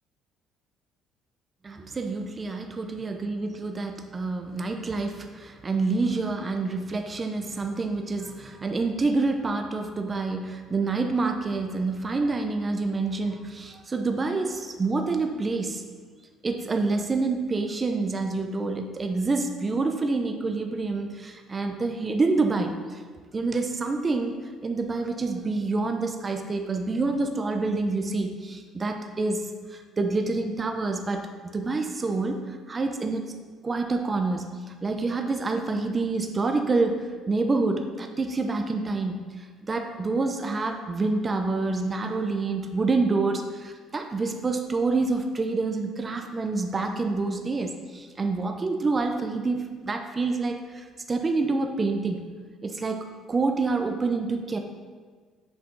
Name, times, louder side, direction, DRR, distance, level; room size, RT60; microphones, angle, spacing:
voice 1, 1.6-15.8 16.4-23.0 23.3-24.3 24.6-33.2 33.6-52.3 52.6-54.6, right 3 dB, 20° right, 4 dB, 0.4 m, -27 dB
6.7 x 4.6 x 3.8 m, 1.5 s
cardioid pair, 155°, 0 cm